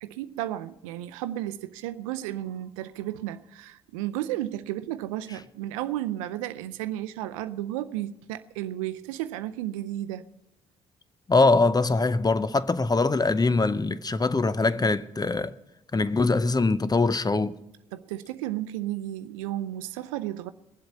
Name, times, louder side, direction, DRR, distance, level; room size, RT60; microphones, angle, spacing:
voice 1, 0.0-10.2 17.9-20.5, right 13 dB, 90° right, 0.5 m, -33 dB
voice 2, 11.3-15.5 15.9-17.6, left 3 dB, 25° left, 0.7 m, -23 dB
21.5 x 7.9 x 5.4 m
hypercardioid pair, 50°, 17 cm